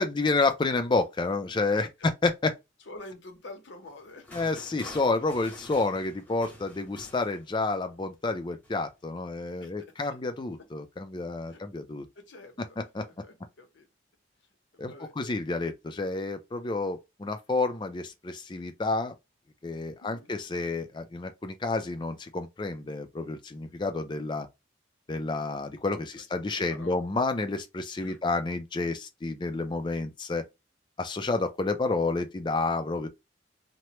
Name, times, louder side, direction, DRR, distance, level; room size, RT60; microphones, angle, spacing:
voice 1, 0.0-2.5 4.3-12.1 12.8-13.0 14.8-19.1 19.6-24.5 25.1-30.4 31.0-33.1, left 3 dB, 25° left, 0.4 m, -30 dB
voice 2, 2.9-4.3 9.6-9.7 10.0-10.2 11.5-11.6 12.2-12.7 13.0-13.9 14.7-15.1 20.0-20.3 26.1-26.2 26.5-27.0 28.0-28.2, left 2 dB, 75° left, 0.9 m, -47 dB
sound 1, 3.8-7.9 8.6-8.9, left 1 dB, 10° left, 0.9 m, -48 dB
3.1 x 2.2 x 2.9 m
head